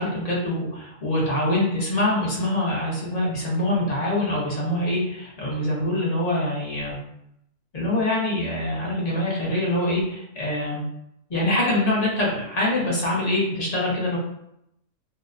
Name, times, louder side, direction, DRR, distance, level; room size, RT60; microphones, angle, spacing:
voice 1, 0.0-7.0 7.7-10.9 11.3-14.2, left 1 dB, 45° left, -5 dB, 0.5 m, -24 dB
2.7 x 2.0 x 2.4 m, 0.79 s
omnidirectional pair, 1.6 m